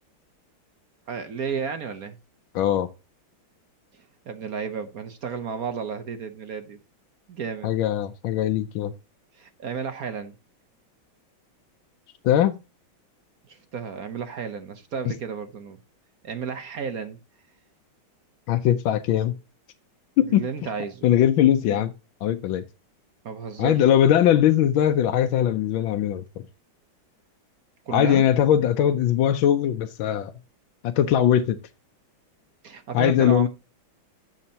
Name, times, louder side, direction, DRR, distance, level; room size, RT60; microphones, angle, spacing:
voice 1, 1.1-2.2 3.9-6.8 7.3-7.7 9.3-10.3 13.5-15.8 16.2-17.2 20.2-21.1 21.6-21.8 23.2-23.9 27.9-28.3 32.6-33.5, right 6 dB, 55° right, 1.2 m, -33 dB
voice 2, 2.5-2.9 7.6-8.9 12.2-12.6 18.5-19.3 20.2-20.4 21.0-21.9 22.2-22.6 23.6-26.4 27.9-30.3 30.8-31.6 32.9-33.5, left 10 dB, 80° left, 1.5 m, -20 dB
12.5 x 7.5 x 2.9 m
omnidirectional pair, 2.2 m